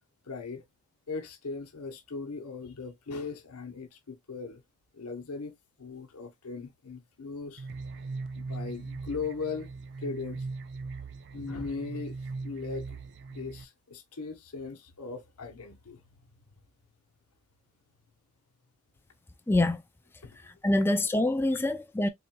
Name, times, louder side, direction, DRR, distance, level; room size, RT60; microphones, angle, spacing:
voice 1, 0.3-0.6 1.1-4.6 4.9-7.7 8.3-9.7 10.0-10.5 11.3-12.2 12.4-13.0 13.3-16.0 20.2-20.4, left 4 dB, 85° left, 0.9 m, -38 dB
sound 1, 7.6-13.6, right 3 dB, 50° right, 0.4 m, -39 dB
voice 2, 19.5-19.8 20.6-22.1, left 1 dB, 10° left, 0.3 m, -25 dB
4.3 x 3.9 x 2.2 m
head